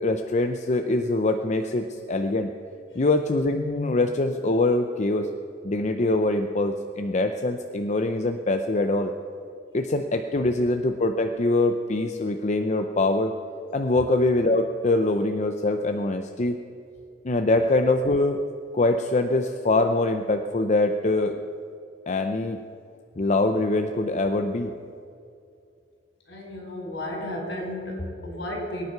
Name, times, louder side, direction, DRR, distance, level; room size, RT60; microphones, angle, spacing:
voice 1, 0.0-2.5 2.9-5.3 5.6-9.1 9.7-13.3 13.7-16.6 17.2-18.4 18.7-21.4 22.1-22.6 23.2-24.7, left 2 dB, 40° left, 6 dB, 0.6 m, -23 dB
voice 2, 26.3-28.9, left 1 dB, 70° left, 0 dB, 4.8 m, -33 dB
22.0 x 9.6 x 5.9 m, 2.5 s
head